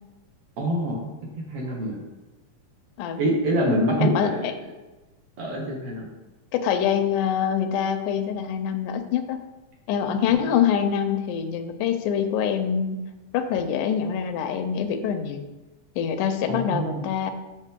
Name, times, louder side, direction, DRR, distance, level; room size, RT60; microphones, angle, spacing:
voice 1, 0.6-1.1 1.3-2.0 3.2-4.5 5.4-6.1 16.5-17.1, right 1 dB, 55° right, -2 dB, 2.1 m, -25 dB
voice 2, 4.0-4.3 6.5-9.4 9.9-13.0 13.3-15.5 16.0-17.3, left 8 dB, 90° left, 8 dB, 2.2 m, -25 dB
7.5 x 6.7 x 3.7 m, 1.1 s
omnidirectional pair, 3.6 m